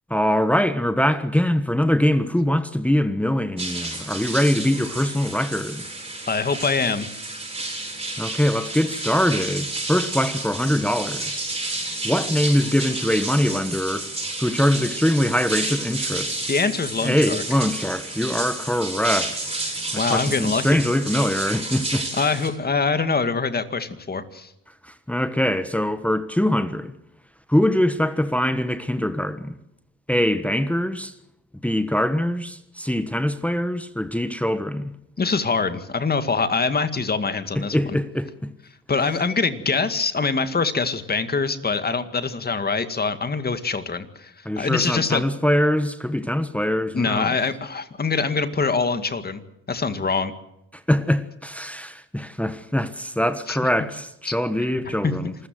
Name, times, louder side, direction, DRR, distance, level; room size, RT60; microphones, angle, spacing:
voice 1, 0.1-5.9 8.2-11.4 12.0-14.1 14.4-16.5 17.0-22.2 24.8-26.9 27.5-29.6 30.1-31.1 31.6-34.9 37.5-38.5 44.4-47.3 50.7-55.3, left 1 dB, 5° left, 1.3 m, -23 dB
sound 1, 3.6-22.5, right 2 dB, 20° right, 7.2 m, -31 dB
voice 2, 6.3-7.1 16.5-17.4 20.0-20.8 22.2-24.5 35.2-38.0 38.9-45.2 46.9-49.4 49.7-50.3 53.5-53.6 54.3-54.4 55.0-55.4, left 4 dB, 30° left, 2.2 m, -24 dB
27.0 x 14.5 x 7.8 m
cardioid pair, 90°, 30 cm